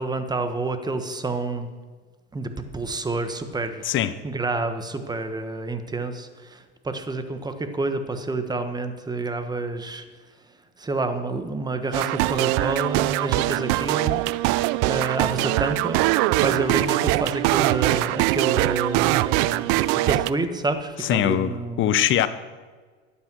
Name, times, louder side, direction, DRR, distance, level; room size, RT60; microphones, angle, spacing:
voice 1, 0.0-1.7 2.3-3.8 4.2-10.0 10.8-14.2 14.9-16.0 16.4-19.7 20.0-21.9, right 3 dB, 10° right, 8 dB, 1.2 m, -28 dB
sound 1, 11.9-20.3, right 18 dB, 50° right, 0.5 m, -22 dB
voice 2, 21.0-22.3, left 11 dB, 40° left, 14 dB, 0.7 m, -22 dB
12.0 x 8.8 x 6.2 m, 1.4 s
hypercardioid pair, 95°, 32 cm